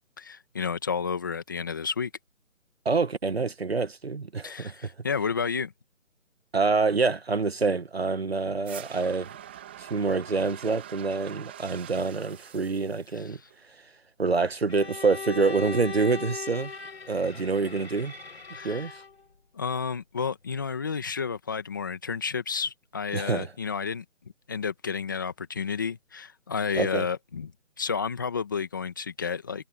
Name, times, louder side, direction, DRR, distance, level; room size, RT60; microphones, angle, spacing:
voice 1, 0.2-2.1 4.4-5.7 13.1-13.4 18.5-18.9 19.5-24.0 24.5-27.5 27.8-29.7, left 6 dB, 15° left, 1.7 m, -31 dB
voice 2, 2.8-4.7 6.5-9.3 9.8-13.4 14.2-16.7 17.1-18.1 18.6-18.9 23.1-23.5 26.7-27.1, right 4 dB, 45° right, 1.6 m, -26 dB
sound 1, 8.6-13.7, right 11 dB, 10° right, 1.8 m, -45 dB
Bowed string instrument, 14.7-19.2, left 5 dB, 50° left, 4.7 m, -38 dB
figure-of-eight pair, 170°, 41 cm